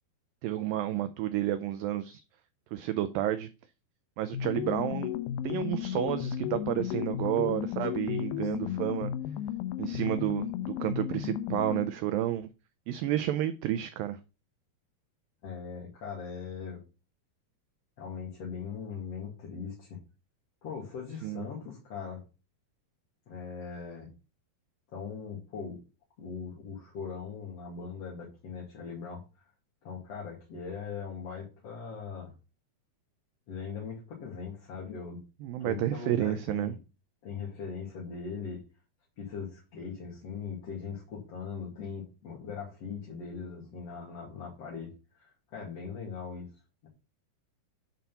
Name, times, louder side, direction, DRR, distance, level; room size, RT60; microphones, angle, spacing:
voice 1, 0.4-2.2 2.7-3.5 4.2-5.1 5.4-9.1 9.8-12.5 12.9-14.2 21.2-21.5 35.4-36.7, right 12 dB, 85° right, 2.0 m, -31 dB
sound 1, 4.3-12.0, left 11 dB, 85° left, 1.9 m, -34 dB
voice 2, 15.4-16.8 18.0-20.0 20.6-22.2 23.3-24.1 24.9-25.8 26.2-29.2 29.8-32.3 33.5-35.2 35.6-36.8 37.2-38.6 39.2-46.5 46.8-46.9, left 6 dB, 45° left, 2.8 m, -40 dB
9.2 x 4.2 x 5.5 m
omnidirectional pair, 4.6 m